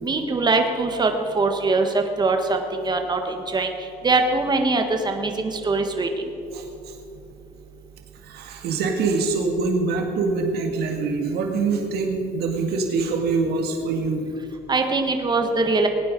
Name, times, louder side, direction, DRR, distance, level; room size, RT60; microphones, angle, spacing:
voice 1, 0.0-6.1 14.7-15.9, right 3 dB, 25° right, 5 dB, 1.5 m, -22 dB
voice 2, 6.5-7.0 8.2-14.3, right 4 dB, 70° right, 2 dB, 2.0 m, -24 dB
19.5 x 9.5 x 5.3 m, 2.8 s
cardioid pair, 110°, 17 cm